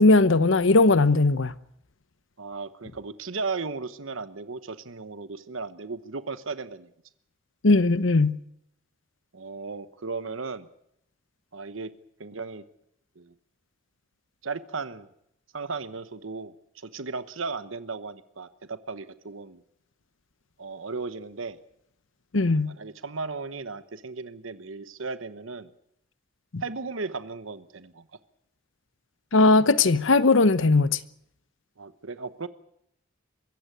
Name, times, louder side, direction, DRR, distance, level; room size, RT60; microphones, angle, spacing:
voice 1, 0.0-1.5 7.6-8.4 22.3-22.7 26.5-26.6 29.3-31.0, left 3 dB, 70° left, 0.9 m, -19 dB
voice 2, 2.4-6.9 9.3-10.7 11.5-11.9 12.2-12.6 13.2-13.3 14.4-15.1 15.5-19.6 20.6-21.6 22.7-25.7 26.6-28.1 31.8-32.5, right 4 dB, 80° right, 1.1 m, -36 dB
23.5 x 15.0 x 9.1 m
head